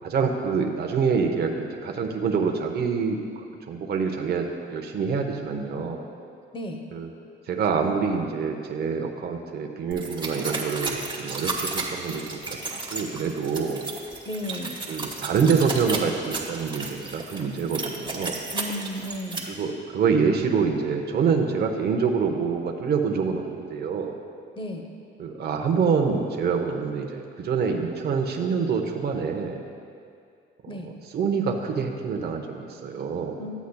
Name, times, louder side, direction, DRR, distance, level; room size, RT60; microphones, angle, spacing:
voice 1, 0.0-3.2 3.7-6.1 6.9-7.1 7.5-13.8 14.9-16.9 17.1-18.4 19.5-24.2 25.2-29.6 30.6-33.4, right 5 dB, 55° right, 3 dB, 0.7 m, -26 dB
sound 1, 9.9-19.4, right 3 dB, 25° right, 1.3 m, -33 dB
voice 2, 14.2-14.8 18.5-19.5 24.6-24.9 30.7-30.9 33.4-33.5, equal, 25° left, 4 dB, 0.7 m, -34 dB
13.0 x 8.1 x 2.2 m, 2.3 s
cardioid pair, 90°, 20 cm